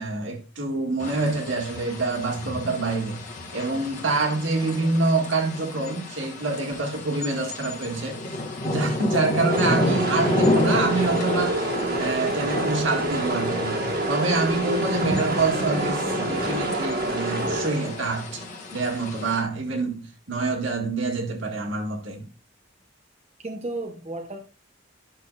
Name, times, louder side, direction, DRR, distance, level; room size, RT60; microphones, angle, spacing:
voice 1, 0.0-3.2 3.5-8.4 8.6-18.4 18.7-22.3, right 3 dB, 65° right, 2.0 m, -26 dB
sound 1, 1.0-19.4, left 1 dB, 40° left, 1.9 m, -30 dB
sound 2, 9.5-18.1, right 2 dB, 50° right, 1.8 m, -28 dB
voice 2, 23.4-24.4, right 2 dB, 30° right, 0.9 m, -34 dB
11.5 x 6.6 x 2.4 m
head